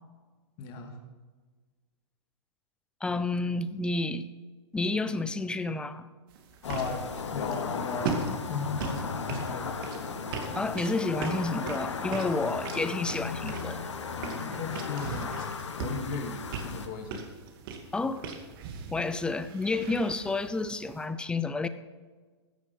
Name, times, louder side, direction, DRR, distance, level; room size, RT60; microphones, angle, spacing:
voice 1, 0.6-1.0 6.6-9.8 14.2-15.3 15.8-17.3, left 5 dB, 40° left, 4 dB, 2.2 m, -36 dB
voice 2, 3.0-4.3 4.7-6.1 10.6-13.9 17.9-18.2 18.9-21.7, left 3 dB, 5° left, 13 dB, 0.6 m, -30 dB
sound 1, 6.3-21.1, right 5 dB, 50° right, 2.3 m, -40 dB
sound 2, 6.6-16.9, left 5 dB, 90° left, 1.5 m, -36 dB
15.5 x 8.6 x 5.3 m, 1.4 s
hypercardioid pair, 130°, 15 cm